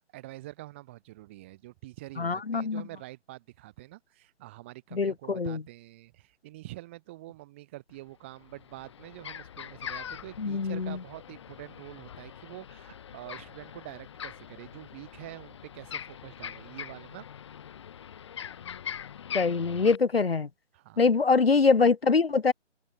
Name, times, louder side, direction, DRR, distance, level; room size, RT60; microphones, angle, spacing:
voice 1, 0.1-17.3 20.7-21.1, right 18 dB, 10° right, 2.5 m, -46 dB
voice 2, 2.2-2.8 4.9-5.6 10.4-11.0 19.3-20.5 21.0-22.5, left 4 dB, 55° left, 2.1 m, -24 dB
sound 1, 7.9-8.0 8.4-20.0, left 9 dB, 25° left, 6.6 m, -42 dB
open air
hypercardioid pair, 175°, 36 cm